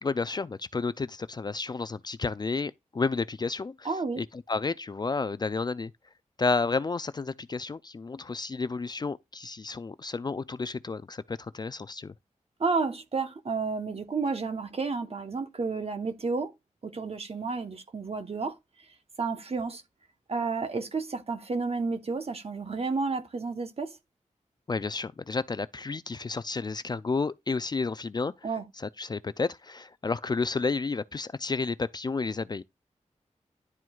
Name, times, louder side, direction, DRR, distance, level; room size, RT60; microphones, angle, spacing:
voice 1, 0.0-3.9 4.2-5.9 6.4-12.1 24.7-28.3 28.8-32.6, left 4 dB, 35° left, 0.3 m, -31 dB
voice 2, 3.8-4.2 12.6-16.5 16.8-18.6 19.2-19.8 20.3-24.0 28.4-28.6, right 4 dB, 50° right, 1.0 m, -31 dB
11.0 x 4.5 x 2.3 m
wide cardioid pair, 70°, 13 cm